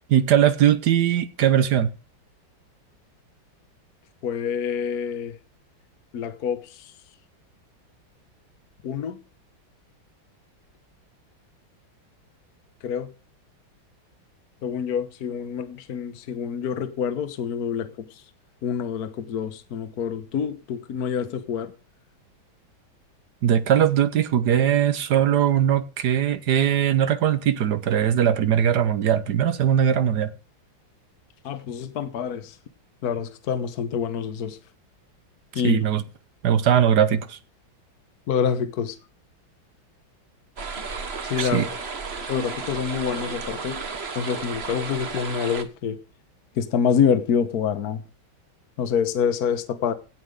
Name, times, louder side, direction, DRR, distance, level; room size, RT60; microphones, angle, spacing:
voice 1, 0.1-1.9 23.4-30.3 35.6-36.0 36.4-37.4 41.4-41.7, right 9 dB, 60° right, 1.3 m, -20 dB
voice 2, 4.2-5.4 6.1-6.9 8.8-9.2 12.8-13.1 14.6-18.2 18.6-21.7 31.4-32.6 33.0-34.6 35.5-35.9 38.3-39.0 41.2-41.7 42.3-46.0 46.5-48.0 48.8-49.9, left 7 dB, 55° left, 1.5 m, -27 dB
sound 1, 40.6-45.6, right 4 dB, 35° right, 1.4 m, -33 dB
16.5 x 5.8 x 6.5 m
omnidirectional pair, 2.2 m